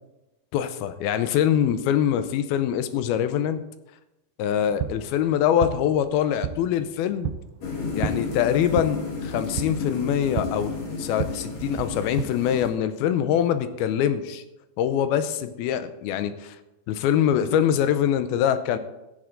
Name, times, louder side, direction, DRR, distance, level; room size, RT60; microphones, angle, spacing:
voice 1, 0.5-3.6 4.4-7.3 7.9-14.4 14.8-16.6 16.9-18.8, left 9 dB, 85° left, 11 dB, 2.6 m, -24 dB
sound 1, 4.5-12.2, right 11 dB, 80° right, 2.2 m, -34 dB
sound 2, 7.6-12.7, left 4 dB, 50° left, 2.7 m, -32 dB
15.5 x 8.0 x 3.8 m, 0.95 s
omnidirectional pair, 4.3 m